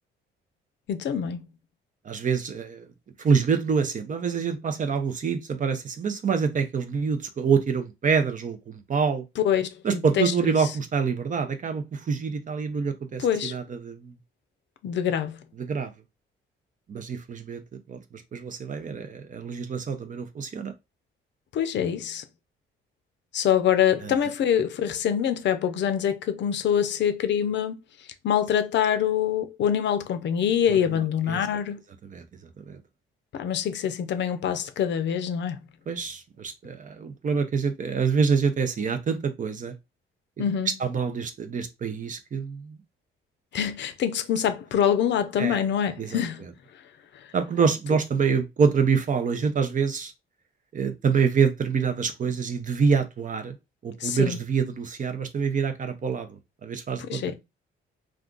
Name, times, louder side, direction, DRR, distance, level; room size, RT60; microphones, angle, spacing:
voice 1, 0.9-1.4 9.4-10.6 13.2-13.5 14.8-15.4 21.5-22.2 23.3-27.8 28.2-31.8 33.3-35.6 40.4-40.7 43.5-46.4 54.0-54.4 57.1-57.3, left 9 dB, 65° left, 0.5 m, -25 dB
voice 2, 2.0-2.9 3.2-9.3 9.8-14.1 15.6-15.9 16.9-17.6 17.9-20.7 24.0-24.3 30.7-30.8 31.3-31.5 32.1-32.2 32.7-32.8 35.9-39.7 40.4-40.5 40.8-42.8 45.4-45.6 46.0-46.5 47.3-50.1 50.7-53.6 53.8-57.3, right 6 dB, 40° right, 0.6 m, -26 dB
2.5 x 2.4 x 3.7 m
cardioid pair, 90°, 20 cm